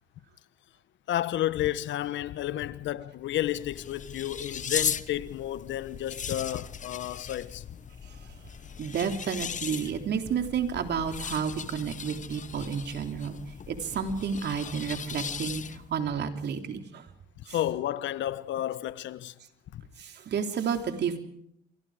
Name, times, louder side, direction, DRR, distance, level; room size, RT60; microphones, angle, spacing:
voice 1, 1.1-7.8 17.4-19.3 19.7-19.8, left 12 dB, 70° left, 1.3 m, -31 dB
sound 1, 3.2-16.0, left 7 dB, 40° left, 1.2 m, -38 dB
voice 2, 8.8-13.4 13.7-15.6 15.9-17.0 20.0-21.2, right 7 dB, 60° right, 3.6 m, -31 dB
28.5 x 24.0 x 5.1 m
cardioid pair, 85°, 20 cm